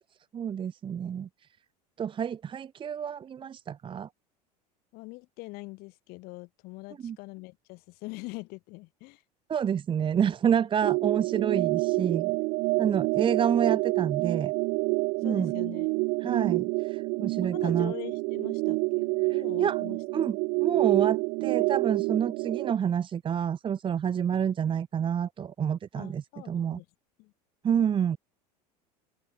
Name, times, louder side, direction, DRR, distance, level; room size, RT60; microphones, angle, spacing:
voice 1, 0.3-1.3 2.0-4.1 7.0-7.2 9.5-12.3 12.8-14.5 15.2-15.5 16.2-17.9 19.3-19.8 20.1-26.8 27.6-28.2, right 8 dB, 25° right, 1.2 m, -28 dB
voice 2, 4.9-9.2 15.2-15.9 17.4-20.0 25.9-26.9 27.2-27.3, left 24 dB, 50° left, 6.2 m, -43 dB
sound 1, 10.8-22.7, right 28 dB, 40° right, 0.4 m, -28 dB
open air
figure-of-eight pair, 75°, 21 cm